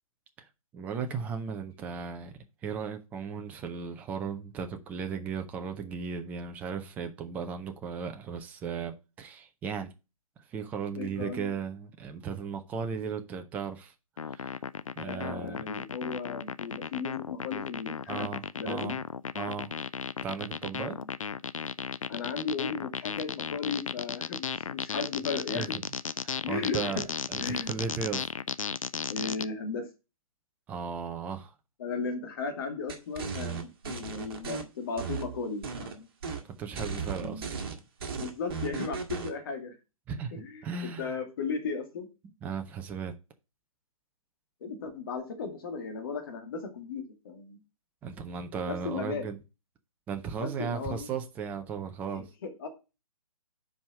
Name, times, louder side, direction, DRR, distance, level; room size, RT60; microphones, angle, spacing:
voice 1, 0.7-9.9 10.5-13.9 14.2-14.6 15.0-15.6 18.1-19.0 19.3-19.7 20.2-21.0 25.6-25.8 26.2-28.3 30.7-31.5 36.4-37.4 40.1-40.3 40.6-41.2 42.4-43.1 48.0-49.4 50.1-52.2, right 6 dB, 10° right, 0.5 m, -36 dB
voice 2, 10.9-11.5 15.0-18.3 18.6-19.0 21.0-21.1 22.1-25.8 26.4-27.0 27.4-27.7 29.1-29.9 31.8-36.1 37.2-37.5 38.2-39.8 40.3-42.1 44.6-47.6 48.7-49.3 50.4-51.1 52.1-52.7, left 4 dB, 40° left, 2.3 m, -36 dB
sound 1, 14.2-29.5, left 6 dB, 65° left, 0.4 m, -35 dB
sound 2, 32.9-34.6 35.0-35.9 36.2-36.4 36.7-39.3, right 5 dB, 40° right, 1.6 m, -36 dB
5.3 x 4.8 x 6.3 m
figure-of-eight pair, 135°, 18 cm